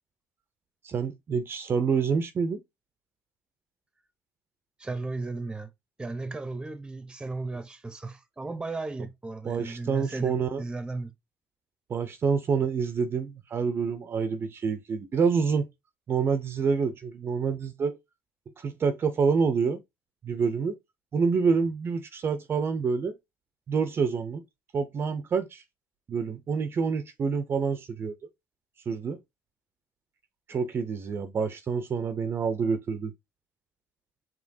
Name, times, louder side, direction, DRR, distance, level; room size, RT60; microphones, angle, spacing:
voice 1, 0.8-2.6 9.4-10.6 11.9-15.7 16.1-18.0 18.6-19.8 20.2-20.8 21.1-23.2 23.7-24.4 24.7-25.6 26.1-28.1 28.9-29.2 30.5-33.1, right 5 dB, 40° right, 0.6 m, -27 dB
voice 2, 4.8-5.7 6.0-11.1, right 3 dB, 15° right, 0.8 m, -35 dB
5.1 x 3.1 x 2.7 m
cardioid pair, 95°, 6 cm